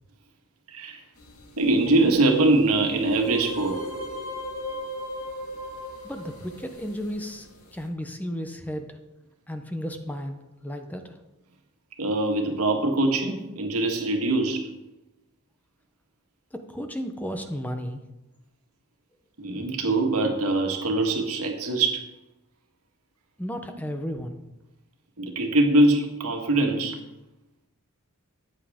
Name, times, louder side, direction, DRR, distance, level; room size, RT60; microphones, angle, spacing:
voice 1, 0.7-1.0 1.6-3.8 12.0-14.7 19.4-22.0 25.2-27.0, right 2 dB, 75° right, 3 dB, 1.7 m, -23 dB
sound 1, 1.2-7.9, left 1 dB, 75° left, 1.9 m, -38 dB
voice 2, 6.0-9.0 9.5-11.2 16.5-18.0 23.4-24.4, equal, 5° left, 6 dB, 0.7 m, -34 dB
13.5 x 9.2 x 3.6 m, 0.98 s
head